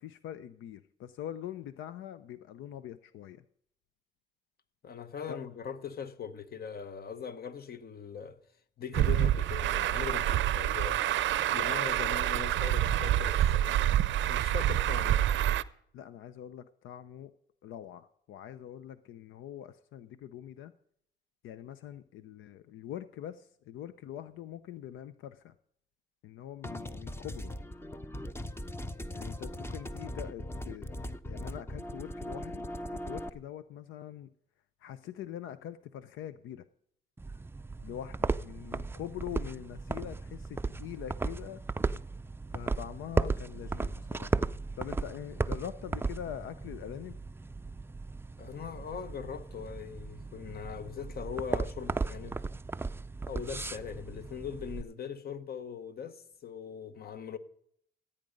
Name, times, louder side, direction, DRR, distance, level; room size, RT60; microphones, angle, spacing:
voice 1, 0.0-3.4 5.3-5.4 15.9-17.3 17.6-20.7 21.4-25.5 26.2-27.5 29.1-30.9 31.3-32.7 32.9-34.3 34.8-36.6 37.8-41.6 42.5-44.4 44.8-47.2, left 11 dB, 80° left, 0.6 m, -43 dB
voice 2, 4.8-8.4 8.8-11.0 11.5-13.8 14.3-15.2 48.4-52.4 53.3-57.4, left 7 dB, 50° left, 1.1 m, -40 dB
Truck, 8.9-15.6, right 12 dB, 70° right, 0.5 m, -27 dB
sound 1, 26.6-33.3, left 1 dB, 10° left, 0.7 m, -39 dB
sound 2, 37.2-54.8, right 3 dB, 10° right, 0.4 m, -36 dB
14.5 x 8.9 x 5.1 m
cardioid pair, 90°, 20 cm